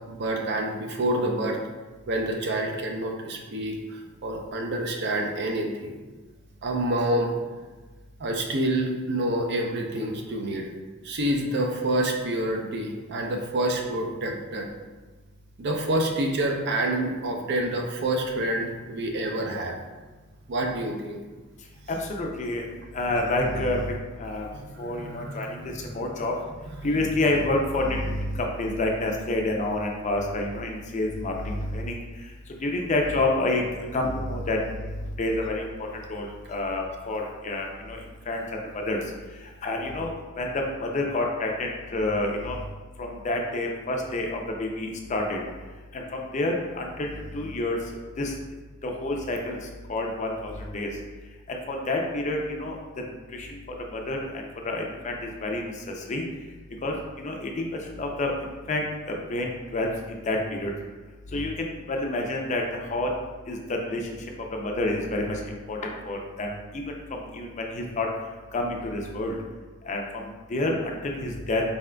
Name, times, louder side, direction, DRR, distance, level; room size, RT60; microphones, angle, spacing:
voice 1, 0.1-1.6 2.1-5.9 6.6-7.3 8.2-10.7 11.0-14.7 15.6-19.8 20.5-21.2 24.8-25.3, right 1 dB, 55° right, 2 dB, 0.5 m, -27 dB
voice 2, 22.0-22.7 22.9-24.5 24.8-26.3 26.8-32.0 32.6-33.6 33.9-34.6 35.2-38.0 38.3-38.4 38.9-39.0 39.6-40.1 40.4-42.6 43.0-45.4 45.9-47.8 48.2-48.3 48.8-49.6 49.9-50.9 51.5-56.2 56.8-57.5 57.9-60.7 61.3-63.1 63.5-63.6 63.9-64.0 64.5-65.8 66.0-68.1 68.5-69.4 69.9-71.6, left 2 dB, 35° left, 1 dB, 0.4 m, -28 dB
4.1 x 3.6 x 2.2 m, 1.3 s
head